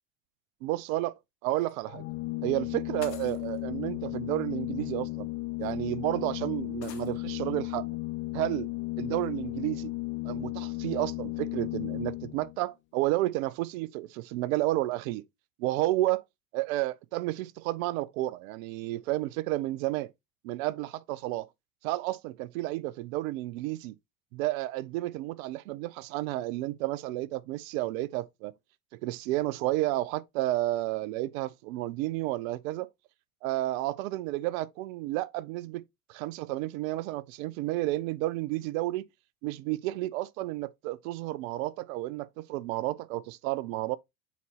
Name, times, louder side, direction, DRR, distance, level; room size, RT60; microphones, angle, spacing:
voice 1, 0.6-1.1 1.4-2.0 2.4-5.3 5.6-7.9 8.3-8.7 9.0-9.9 10.2-15.2 15.6-16.2 16.5-20.1 20.4-21.5 21.8-23.9 24.3-28.5 29.0-32.9 33.4-35.8 36.1-39.0 39.4-44.0, right 17 dB, 55° right, 0.6 m, -31 dB
sound 1, 1.6-1.7 3.0-3.6 4.8-4.9 5.6-5.7 6.8-7.1, left 9 dB, 80° left, 1.1 m, -48 dB
Organ, 1.9-12.6, left 22 dB, 25° left, 0.4 m, -35 dB
8.4 x 4.1 x 2.8 m
hypercardioid pair, 75°, 49 cm